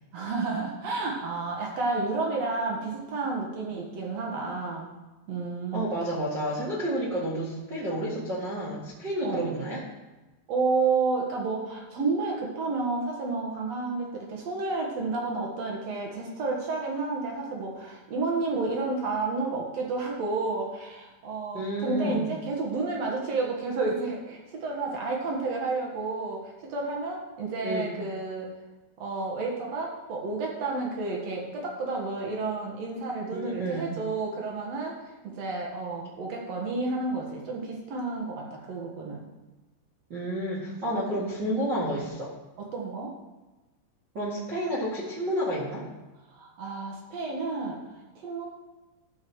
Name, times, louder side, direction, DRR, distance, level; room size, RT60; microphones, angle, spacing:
voice 1, 0.1-4.9 5.3-5.9 9.2-9.5 10.5-28.5 29.0-39.3 42.6-43.1 46.3-48.5, right 3 dB, 75° right, -1 dB, 1.5 m, -31 dB
voice 2, 5.7-9.9 21.5-22.2 27.6-27.9 33.3-33.8 40.1-42.3 44.1-45.9, equal, 50° right, -6 dB, 1.2 m, -30 dB
14.0 x 4.8 x 6.2 m, 1.1 s
omnidirectional pair, 5.4 m